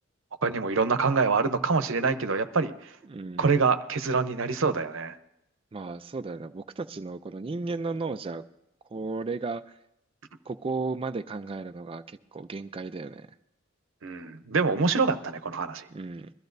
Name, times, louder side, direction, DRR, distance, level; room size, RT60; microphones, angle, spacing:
voice 1, 0.4-2.7 3.4-5.2 14.0-15.9, right 4 dB, 90° right, 10 dB, 0.8 m, -25 dB
voice 2, 3.1-3.5 5.7-8.4 8.9-9.6 10.5-13.3 15.9-16.3, right 3 dB, 30° right, 9 dB, 0.4 m, -34 dB
22.0 x 14.0 x 2.6 m, 0.84 s
head